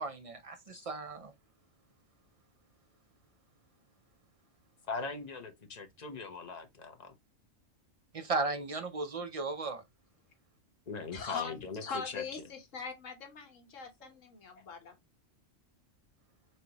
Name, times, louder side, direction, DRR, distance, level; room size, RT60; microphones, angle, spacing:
voice 1, 0.0-1.3 8.1-9.8, right 3 dB, 45° right, 0.4 m, -35 dB
voice 2, 4.9-7.1 10.9-12.4 14.0-14.1 14.5-14.6, left 4 dB, 35° left, 0.9 m, -41 dB
voice 3, 11.1-11.5 11.8-14.9, left 5 dB, 75° left, 1.6 m, -41 dB
4.3 x 3.3 x 2.9 m
omnidirectional pair, 1.3 m